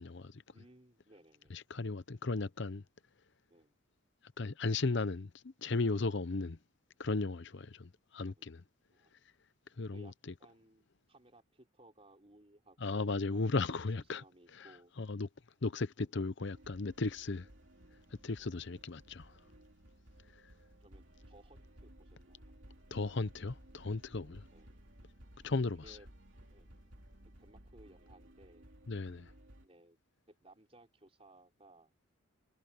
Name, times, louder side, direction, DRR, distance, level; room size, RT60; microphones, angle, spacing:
voice 1, 0.0-0.4 1.5-2.8 4.4-6.6 7.0-8.6 9.8-10.1 12.8-14.2 14.6-14.7 15.0-15.3 15.6-17.5 18.2-19.4 22.9-24.4 25.4-26.0 28.9-29.3, left 3 dB, 55° left, 0.8 m, -36 dB
voice 2, 0.5-1.5 3.5-3.8 8.4-8.5 8.9-9.1 9.9-10.1 10.4-13.6 14.1-14.9 16.0-16.1 17.6-17.7 18.4-18.6 20.8-22.5 24.5-24.7 25.8-26.1 26.5-26.7 27.4-28.7 29.6-30.0 30.3-31.9, right 1 dB, 30° right, 4.4 m, -61 dB
sound 1, 16.5-29.7, right 1 dB, 60° right, 3.7 m, -58 dB
head